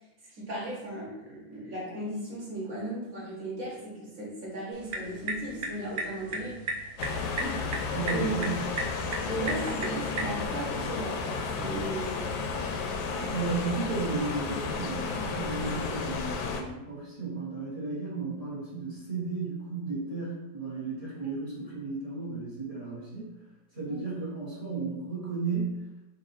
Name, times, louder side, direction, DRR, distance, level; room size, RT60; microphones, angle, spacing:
voice 1, 0.3-6.6 7.4-7.7 8.1-8.4 9.3-12.2 23.8-24.0, right 1 dB, 45° right, -6 dB, 1.7 m, -36 dB
sound 1, 4.7-10.4, right 2 dB, 65° right, 1.1 m, -36 dB
sound 2, 7.0-16.6, left 4 dB, 80° left, 1.3 m, -33 dB
voice 2, 7.9-8.6 13.2-23.3 23.7-25.8, right 4 dB, 25° right, -7 dB, 1.1 m, -34 dB
4.1 x 2.7 x 4.2 m, 0.97 s
omnidirectional pair, 2.1 m